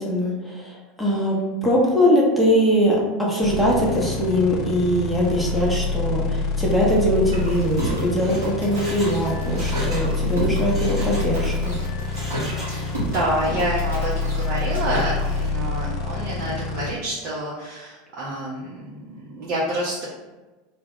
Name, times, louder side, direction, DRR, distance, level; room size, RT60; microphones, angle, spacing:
voice 1, 0.0-11.8, equal, 5° left, -5 dB, 0.8 m, -21 dB
voice 2, 1.0-1.4 12.7-20.0, right 1 dB, 50° right, -6 dB, 0.6 m, -28 dB
sound 1, 3.4-16.9, left 4 dB, 50° left, 0.3 m, -27 dB
sound 2, 7.2-15.5, equal, 80° right, 0.9 m, -32 dB
Mechanisms, 7.8-10.1 10.4-11.6 12.0-13.1 13.4-13.5, equal, 15° right, 1.2 m, -38 dB
2.3 x 2.1 x 3.5 m, 1.2 s
figure-of-eight pair, 80°, 0 cm